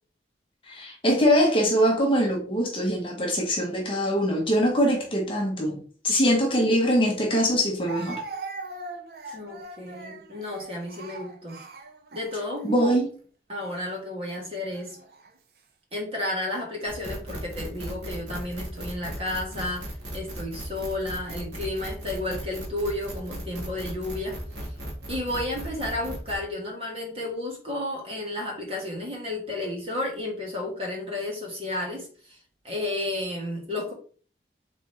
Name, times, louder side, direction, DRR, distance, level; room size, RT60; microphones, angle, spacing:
voice 1, 0.6-5.8 6.0-8.2 12.6-13.1, equal, 30° left, 1.0 m, -23 dB
Speech, 6.7-6.8 7.9-12.7 13.5-13.8 14.7-15.3, right 3 dB, 55° right, 0.6 m, -40 dB
voice 2, 9.3-11.6 12.1-12.9 13.5-15.0 15.9-24.4 25.1-32.4 32.6-33.9, left 1 dB, 35° right, 1.4 m, -32 dB
sound 1, 16.9-26.4, right 1 dB, 75° right, 1.3 m, -37 dB
3.7 x 3.4 x 4.3 m
head